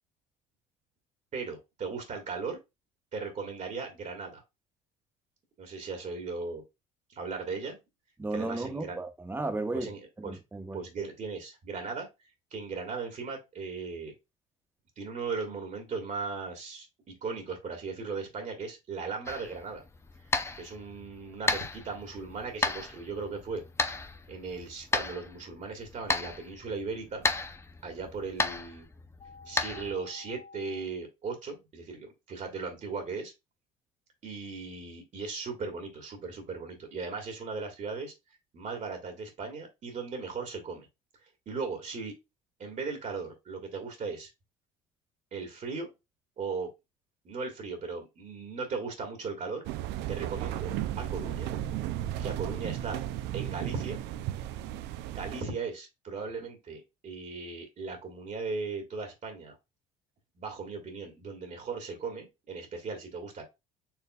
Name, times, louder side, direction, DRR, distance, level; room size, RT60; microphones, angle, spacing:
voice 1, 1.3-2.6 3.1-4.4 5.6-6.6 7.1-7.8 8.3-9.0 9.7-10.4 10.7-12.1 12.5-14.1 15.0-19.8 20.6-23.6 23.9-24.0 24.3-27.3 27.8-28.8 29.4-33.3 34.2-38.1 38.5-40.9 41.5-42.1 42.6-44.3 45.3-45.9 46.4-46.7 47.2-49.6 50.1-51.5 52.2-53.0 53.3-54.0 55.1-59.6 60.4-63.4, right 4 dB, 40° right, 1.5 m, -37 dB
voice 2, 8.2-9.9 10.2-10.8, right 2 dB, 10° right, 0.9 m, -34 dB
sound 1, 19.3-30.0, left 3 dB, 15° left, 0.5 m, -34 dB
sound 2, 29.2-30.8, left 4 dB, 45° left, 1.1 m, -50 dB
sound 3, 49.6-55.4, right 12 dB, 70° right, 0.4 m, -34 dB
4.5 x 3.2 x 2.2 m
supercardioid pair, 90°, 19 cm